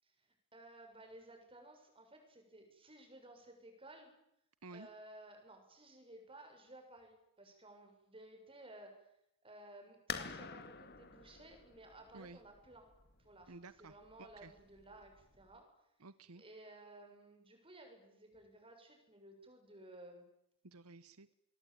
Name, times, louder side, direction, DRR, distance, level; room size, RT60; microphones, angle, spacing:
voice 1, 0.0-4.1 4.7-9.1 9.4-12.9 13.2-15.7 16.4-20.2, right 1 dB, 25° right, 4 dB, 7.1 m, -57 dB
sound 1, 10.1-15.6, left 6 dB, 45° left, 2.3 m, -49 dB
voice 2, 13.5-14.5 16.0-16.4 20.6-21.3, right 3 dB, 75° right, 15 dB, 1.0 m, -53 dB
27.5 x 22.5 x 9.0 m, 0.78 s
head